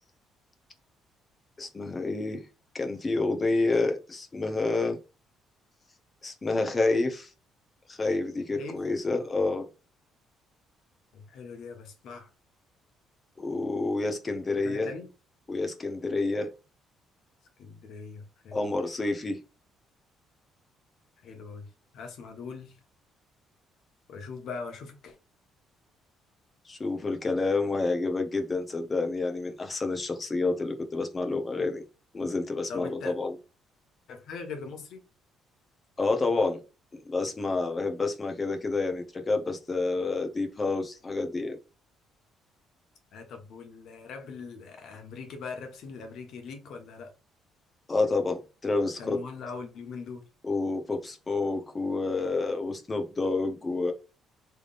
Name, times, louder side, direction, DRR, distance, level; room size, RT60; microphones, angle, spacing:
voice 1, 1.6-2.4 2.7-5.0 6.2-7.3 7.9-9.7 13.4-14.9 15.5-16.5 18.5-19.4 26.7-31.8 32.1-33.3 36.0-36.6 36.9-41.6 47.9-49.2 50.4-53.9, left 3 dB, 25° left, 0.9 m, -29 dB
voice 2, 8.5-8.8 11.1-12.3 14.5-15.1 17.6-18.7 21.2-21.7 21.9-22.8 24.1-25.2 32.7-33.1 34.1-35.0 43.1-47.1 49.0-50.2, left 4 dB, 65° left, 1.2 m, -41 dB
3.5 x 3.4 x 2.5 m
cardioid pair, 110°, 0 cm